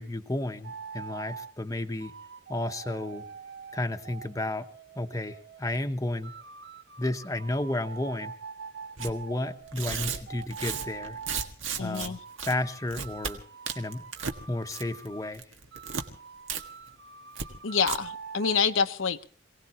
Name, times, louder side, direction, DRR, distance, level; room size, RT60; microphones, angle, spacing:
voice 1, 0.0-2.1 2.5-3.3 3.7-4.7 5.0-6.3 7.0-8.3 9.0-11.2 11.8-12.2 12.4-13.4 13.7-14.1 14.5-15.4, left 1 dB, 15° left, 6 dB, 0.9 m, -32 dB
sound 1, 0.6-1.5 2.0-5.7 6.2-11.5 12.0-15.3 15.7-18.6, right 5 dB, 60° right, 0.8 m, -45 dB
Tearing, 9.0-9.1 9.7-12.1 12.4-12.5 12.9-13.3 13.7-14.4 14.7-15.1 15.3-16.0 16.5-16.6 16.9-17.0 17.3-17.5 17.8-18.0, right 6 dB, 75° right, 1.7 m, -34 dB
voice 2, 11.8-12.2 17.6-19.2, left 6 dB, 80° left, 8 dB, 0.8 m, -27 dB
27.0 x 18.0 x 3.0 m, 0.41 s
head